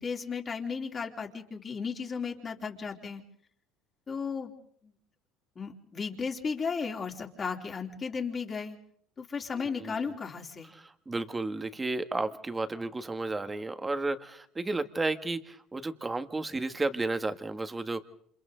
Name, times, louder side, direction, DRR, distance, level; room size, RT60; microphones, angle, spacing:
voice 1, 0.0-3.2 4.1-4.5 4.8-4.9 5.6-8.8 9.2-10.7, left 5 dB, 30° left, 2 dB, 3.3 m, -35 dB
voice 2, 9.6-9.9 10.8-18.0, right 2 dB, 15° right, 9 dB, 1.7 m, -33 dB
29.0 x 27.0 x 3.9 m, 0.64 s
supercardioid pair, 95°, 0 cm